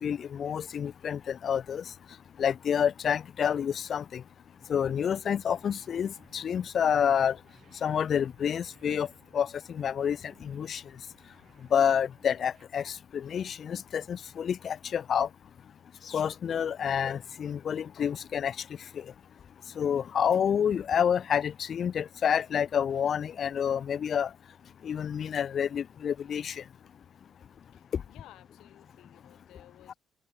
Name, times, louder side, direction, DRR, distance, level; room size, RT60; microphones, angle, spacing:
voice 1, 0.0-1.8 2.4-4.2 4.7-7.4 7.8-9.1 9.3-10.2 10.4-10.8 11.7-15.3 16.1-18.5 19.8-24.3 24.8-26.5, left 8 dB, 55° left, 0.8 m, -28 dB
sound 1, 4.6-12.7, right 8 dB, 60° right, 4.9 m, -63 dB
voice 2, 27.7-30.0, left 14 dB, 85° left, 5.9 m, -56 dB
open air
cardioid pair, 80°, 0 cm